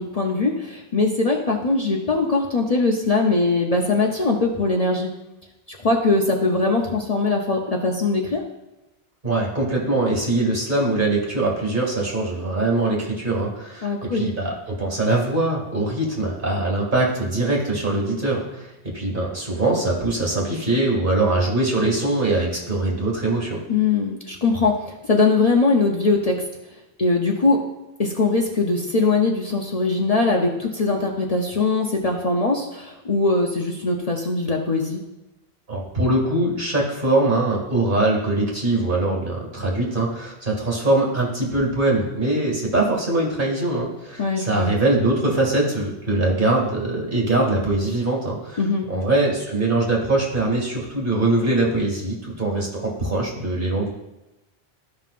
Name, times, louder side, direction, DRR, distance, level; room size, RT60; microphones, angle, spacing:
voice 1, 0.0-5.1 5.7-8.4 13.8-14.2 23.7-26.4 27.0-27.6 28.0-35.0 44.2-44.7 48.6-48.9, left 3 dB, 40° left, 0 dB, 0.8 m, -21 dB
voice 2, 9.2-23.6 35.7-48.6 48.9-53.9, right 2 dB, 55° right, -1 dB, 2.2 m, -22 dB
13.5 x 5.5 x 2.5 m, 0.98 s
omnidirectional pair, 1.1 m